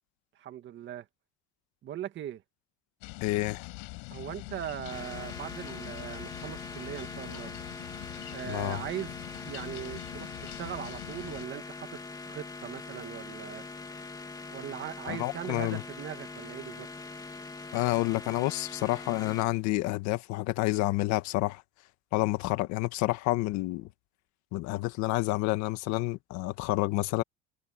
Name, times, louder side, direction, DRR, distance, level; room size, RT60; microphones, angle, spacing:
voice 1, 0.4-1.1 1.8-2.4 4.1-7.5 8.3-13.6 14.5-16.9, right 11 dB, 35° right, 2.0 m, -40 dB
sound 1, 3.0-11.5, left 31 dB, 75° left, 5.7 m, -43 dB
voice 2, 3.2-3.7 8.5-8.8 15.1-15.8 17.7-21.6 22.1-23.9 24.5-27.2, left 19 dB, 60° left, 1.6 m, -29 dB
sound 2, 4.9-19.4, left 3 dB, 10° left, 1.8 m, -43 dB
cardioid pair, 160°, 32 cm